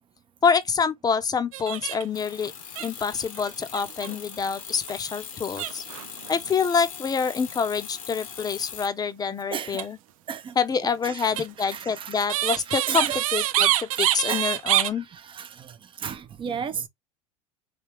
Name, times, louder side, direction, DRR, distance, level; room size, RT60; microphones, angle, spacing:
voice 1, 0.4-2.5 2.8-5.8 6.3-10.0 10.6-15.1, left 6 dB, 20° left, 0.6 m, -26 dB
sound 1, 1.5-2.2 2.4-2.5 2.8-4.2 4.7-4.9 5.6-6.4 9.6-9.8 11.4-14.9, right 13 dB, 85° right, 0.4 m, -26 dB
sound 2, 2.1-8.9, left 8 dB, 85° left, 1.1 m, -40 dB
voice 2, 9.5-9.9 10.3-10.6 10.8-12.3 12.6-13.2 13.9-16.9, right 7 dB, 30° right, 0.6 m, -35 dB
3.4 x 2.7 x 3.1 m
hypercardioid pair, 90°, 17 cm